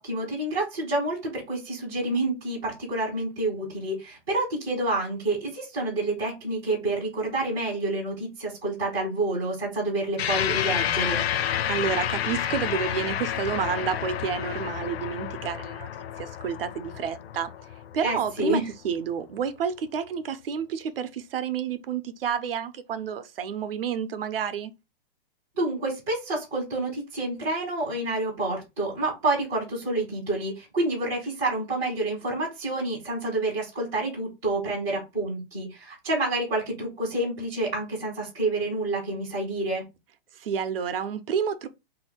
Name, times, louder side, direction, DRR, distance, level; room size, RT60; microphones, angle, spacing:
voice 1, 0.0-11.2 18.0-18.6 25.6-39.8, right 2 dB, 5° right, 0.3 m, -28 dB
sound 1, 10.2-18.9, left 10 dB, 90° left, 0.6 m, -30 dB
voice 2, 11.7-17.5 17.9-24.7 40.4-41.7, right 7 dB, 70° right, 0.7 m, -30 dB
2.7 x 2.6 x 4.2 m
hypercardioid pair, 175°, 30 cm